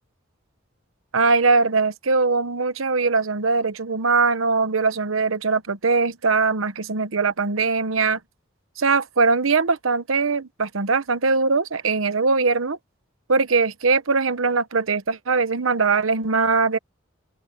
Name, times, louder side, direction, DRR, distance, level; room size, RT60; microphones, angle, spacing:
voice 1, 1.1-8.2 8.8-12.8 13.3-16.8, right 4 dB, 85° right, 1.0 m, -21 dB
open air
head